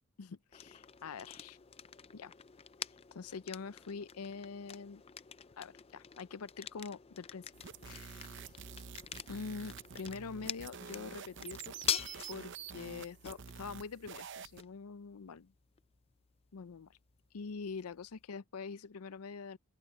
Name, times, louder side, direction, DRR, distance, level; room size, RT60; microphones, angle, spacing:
voice 1, 0.2-1.6 2.1-2.3 2.8-5.0 5.6-7.5 7.8-8.5 9.3-12.0 12.3-15.5 16.5-17.0 17.3-19.6, left 5 dB, 90° left, 0.6 m, -45 dB
sound 1, 0.5-18.3, left 9 dB, 25° left, 0.4 m, -46 dB
sound 2, 7.5-14.6, right 7 dB, 55° right, 0.7 m, -48 dB
open air
head